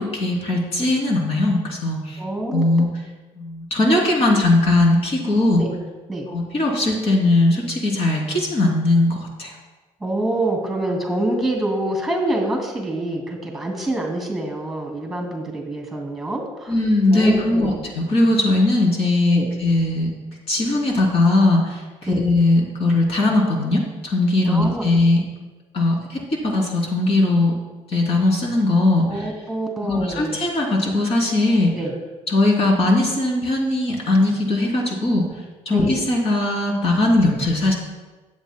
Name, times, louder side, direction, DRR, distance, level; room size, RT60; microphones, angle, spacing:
voice 1, 0.0-2.2 2.5-2.9 3.4-5.6 6.3-9.5 16.7-20.1 20.5-25.2 25.7-27.5 27.9-29.3 29.8-31.7 32.3-35.2 35.6-37.7, left 2 dB, 50° left, -1 dB, 2.9 m, -19 dB
voice 2, 2.2-2.6 5.6-5.8 6.1-6.3 10.0-16.7 17.1-17.8 19.3-19.5 22.0-22.2 24.4-24.9 29.0-30.4 31.7-31.9 35.7-35.9, right 1 dB, 5° right, 1 dB, 2.5 m, -26 dB
16.5 x 8.3 x 2.2 m, 1.2 s
cardioid pair, 100°, 13 cm